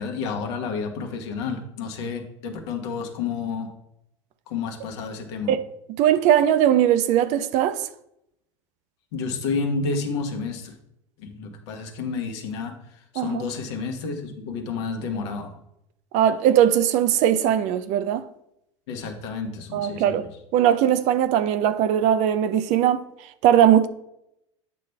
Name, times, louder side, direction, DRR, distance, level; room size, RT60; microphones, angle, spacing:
voice 1, 0.0-3.7 4.5-5.5 9.1-10.8 11.2-12.8 13.1-15.5 18.9-20.2, left 4 dB, 65° left, 1.3 m, -30 dB
voice 2, 6.0-7.9 13.2-13.4 16.1-18.3 19.7-20.2 20.5-23.1 23.4-23.9, right 10 dB, 50° right, 0.5 m, -19 dB
8.4 x 3.2 x 5.6 m
figure-of-eight pair, 75°, 16 cm